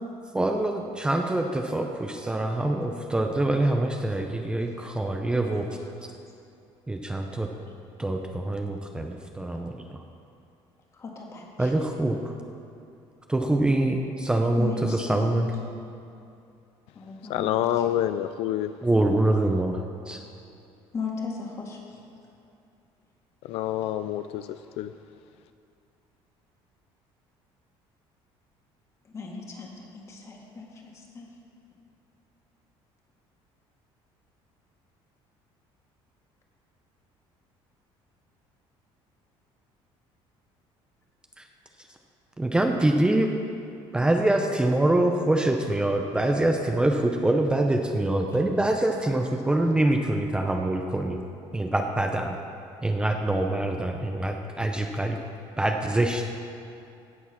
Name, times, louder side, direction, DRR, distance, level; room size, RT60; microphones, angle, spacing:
voice 1, 0.3-5.7 6.9-7.5 8.0-10.0 11.6-12.3 13.3-15.5 18.8-20.2 41.4-41.5 42.4-43.3 43.9-51.2 51.5-52.4 52.8-55.2 55.6-56.2, right 1 dB, 10° right, 3 dB, 0.6 m, -25 dB
voice 2, 11.0-11.7 14.6-15.4 17.0-17.5 20.9-21.8 29.1-31.3, left 5 dB, 30° left, 0 dB, 1.9 m, -36 dB
voice 3, 17.3-18.8 23.5-24.9, left 12 dB, 70° left, 11 dB, 0.4 m, -27 dB
17.0 x 7.1 x 5.9 m, 2.6 s
cardioid pair, 155°, 11 cm